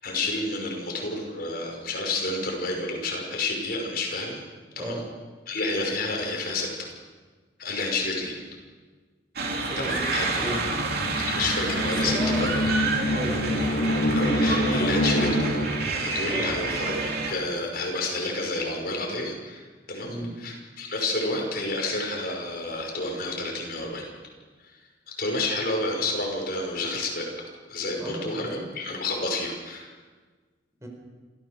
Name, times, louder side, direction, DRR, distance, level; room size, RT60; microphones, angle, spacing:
voice 1, 0.0-4.4 4.8-5.0 5.5-6.9 7.6-8.4 9.8-10.4 11.3-12.7 14.1-15.6 16.0-24.1 25.2-27.3 27.7-29.9, left 2 dB, 55° left, 0 dB, 5.6 m, -30 dB
voice 2, 4.8-5.1 9.6-10.7 12.0-12.4 13.1-14.0 16.3-16.5 20.0-20.4 28.0-28.7 30.8-30.9, equal, 15° right, 1 dB, 4.4 m, -35 dB
sound 1, 9.4-17.3, right 3 dB, 60° right, 3.2 m, -29 dB
sound 2, 10.5-16.0, left 1 dB, 75° left, 3.1 m, -26 dB
26.5 x 15.0 x 6.7 m, 1.4 s
head